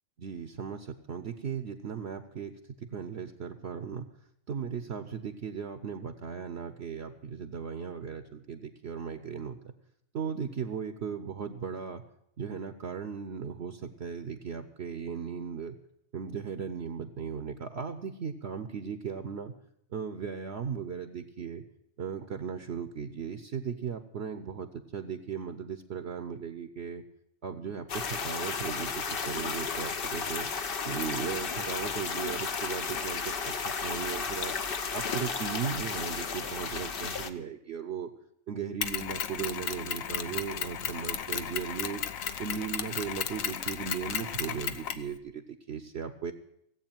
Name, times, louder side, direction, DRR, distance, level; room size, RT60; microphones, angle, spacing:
voice 1, 0.2-4.1 4.5-9.7 10.1-12.0 12.4-15.8 16.1-19.5 19.9-21.6 22.0-27.0 27.4-30.5 30.8-33.5 33.8-34.5 34.9-38.1 38.5-42.0 42.4-46.3, right 7 dB, 55° right, 9 dB, 1.0 m, -37 dB
sound 1, 27.9-37.3, left 5 dB, 50° left, 1.0 m, -33 dB
Mechanisms, 38.8-45.1, left 8 dB, 85° left, 1.3 m, -34 dB
17.0 x 8.1 x 8.9 m, 0.74 s
omnidirectional pair, 1.4 m